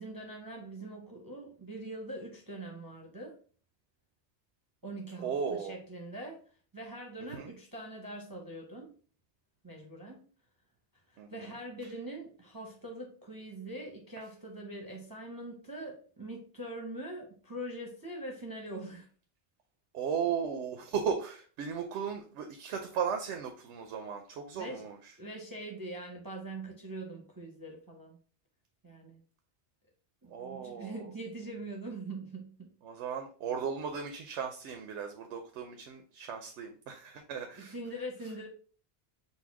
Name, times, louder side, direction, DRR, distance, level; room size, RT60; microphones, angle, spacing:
voice 1, 0.0-3.4 4.8-6.4 6.7-8.9 9.6-10.2 11.1-19.1 24.6-24.9 25.2-28.2 28.8-29.2 30.2-32.7 37.6-38.5, right 1 dB, 25° right, 0 dB, 0.6 m, -43 dB
voice 2, 5.2-5.8 7.3-7.5 11.2-11.3 19.9-25.1 30.3-31.1 32.8-37.7, right 7 dB, 90° right, 5 dB, 0.9 m, -36 dB
4.1 x 2.2 x 4.5 m, 0.41 s
omnidirectional pair, 1.1 m